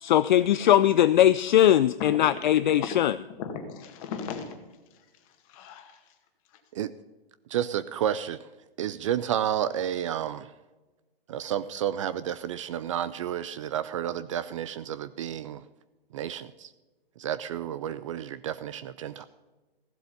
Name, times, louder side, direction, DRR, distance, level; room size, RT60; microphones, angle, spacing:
voice 1, 0.0-3.2, left 11 dB, 55° left, 13 dB, 0.5 m, -20 dB
voice 2, 2.0-2.4 3.4-4.6 5.5-5.9, left 6 dB, 35° left, 6 dB, 2.0 m, -36 dB
voice 3, 7.5-8.5 8.8-10.5 11.3-15.6 16.1-16.7 17.2-19.2, right 10 dB, 35° right, 15 dB, 0.4 m, -31 dB
15.5 x 7.5 x 5.3 m, 1.2 s
hypercardioid pair, 130°, 29 cm